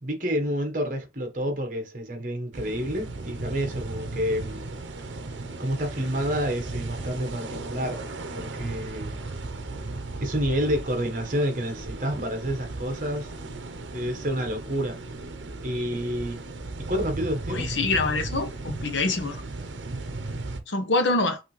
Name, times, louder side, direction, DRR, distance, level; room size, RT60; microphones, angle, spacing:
voice 1, 0.0-4.7 5.6-8.0 8.3-9.2 10.2-13.3 13.9-15.0 15.6-16.4 16.9-17.7, equal, 45° right, 1.3 m, -29 dB
sound 1, 2.5-20.6, right 2 dB, 80° right, 0.8 m, -36 dB
voice 2, 17.5-19.4 20.7-21.4, left 3 dB, 80° left, 0.9 m, -25 dB
5.8 x 2.8 x 3.2 m
head